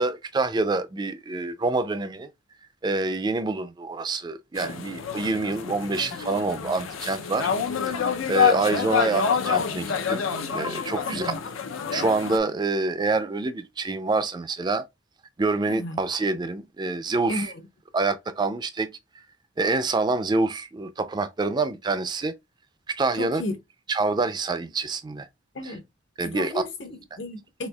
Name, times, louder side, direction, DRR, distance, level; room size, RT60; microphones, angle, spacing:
voice 1, 0.0-2.3 2.8-7.5 7.9-10.2 10.5-11.3 11.9-14.8 15.4-17.5 17.9-18.9 19.6-22.3 22.9-23.4 23.9-25.3 25.6-25.7 26.2-26.6, right 3 dB, 20° right, 0.3 m, -26 dB
sound 1, 4.6-12.4, left 7 dB, 85° left, 0.5 m, -27 dB
voice 2, 11.0-11.4 15.7-16.0 17.3-17.6 23.2-23.6 25.5-25.8 26.2-27.7, left 1 dB, 65° left, 0.9 m, -33 dB
4.2 x 2.7 x 2.2 m
head